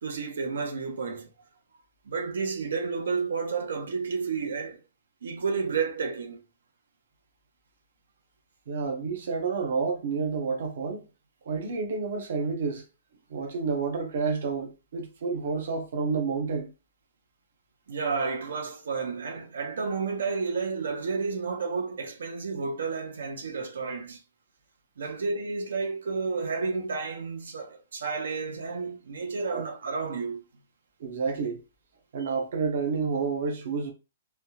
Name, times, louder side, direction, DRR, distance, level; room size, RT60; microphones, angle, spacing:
voice 1, 0.0-1.3 2.1-4.8 5.2-6.4 17.9-24.2 25.0-30.4 32.2-32.3, right 4 dB, 85° right, 0.8 m, -31 dB
voice 2, 8.7-11.1 11.4-12.8 13.3-16.7 29.5-29.6 31.0-31.6 32.1-33.9, right 5 dB, 55° right, 0.8 m, -29 dB
3.3 x 2.3 x 2.8 m
hypercardioid pair, 170°, 0 cm